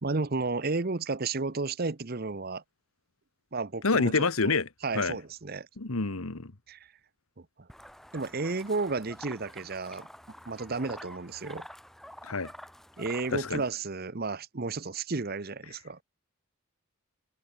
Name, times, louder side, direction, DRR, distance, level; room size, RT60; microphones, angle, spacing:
voice 1, 0.0-2.6 3.5-4.5 4.8-5.7 6.7-6.9 7.4-7.7 8.1-10.1 10.5-11.7 13.0-16.0, right 3 dB, 45° right, 0.9 m, -32 dB
voice 2, 3.8-4.7 4.9-5.2 5.8-6.5 12.2-12.5 13.3-13.6, left 3 dB, 85° left, 1.5 m, -27 dB
sound 1, 7.7-13.7, equal, ahead, 7.5 m, -48 dB
head